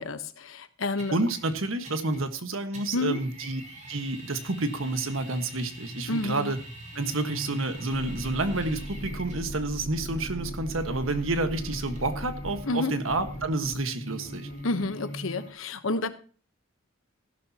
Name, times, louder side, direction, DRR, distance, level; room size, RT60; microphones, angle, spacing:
voice 1, 0.0-1.2 2.9-3.2 6.1-6.5 12.6-12.9 14.6-16.1, left 2 dB, 85° left, 1.1 m, -29 dB
sound 1, 1.0-2.4 2.7-9.5 10.5-15.5, right 1 dB, 35° right, 3.1 m, -46 dB
voice 2, 1.1-3.6 3.9-6.6 6.9-14.5, right 2 dB, 90° right, 1.5 m, -29 dB
sound 2, 6.9-15.5, equal, 70° left, 2.8 m, -38 dB
15.0 x 11.5 x 2.9 m
head